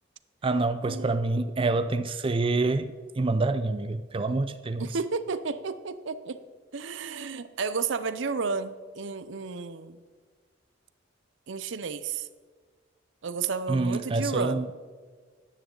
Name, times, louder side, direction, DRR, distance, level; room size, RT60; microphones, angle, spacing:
voice 1, 0.4-4.9 13.7-14.7, right 3 dB, 30° right, 10 dB, 0.4 m, -27 dB
voice 2, 4.8-6.4 6.7-10.0 11.5-12.3 13.2-14.6, right 5 dB, 70° right, 13 dB, 0.6 m, -32 dB
14.0 x 10.0 x 3.9 m, 1.5 s
head